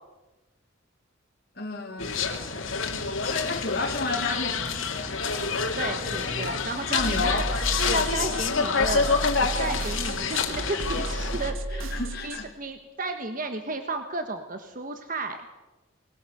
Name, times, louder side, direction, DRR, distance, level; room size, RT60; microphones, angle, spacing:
voice 1, 1.6-2.1 3.2-5.1 6.9-7.5 11.7-12.5, left 3 dB, 50° left, 0 dB, 2.1 m, -31 dB
sound 1, 2.0-11.5, left 5 dB, 75° left, 2.5 m, -28 dB
voice 2, 5.5-7.4 7.9-9.1 9.4-15.4, right 2 dB, 40° right, 7 dB, 1.4 m, -33 dB
sound 2, 7.0-12.4, right 1 dB, 80° right, 1.3 m, -33 dB
21.0 x 19.0 x 8.0 m, 1.1 s
head